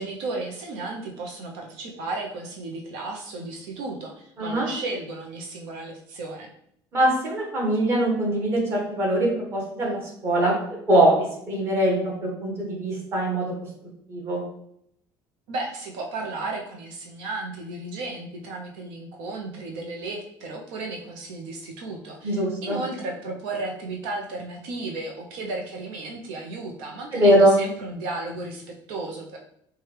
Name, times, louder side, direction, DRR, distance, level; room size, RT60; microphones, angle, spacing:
voice 1, 0.0-6.5 15.5-29.4, right 2 dB, 80° right, 1 dB, 0.6 m, -34 dB
voice 2, 4.4-4.7 6.9-10.5 10.9-13.5 14.1-14.4 22.2-22.8 27.1-27.6, right 1 dB, 30° right, -2 dB, 1.2 m, -22 dB
4.6 x 2.3 x 3.2 m, 0.72 s
cardioid pair, 175°, 9 cm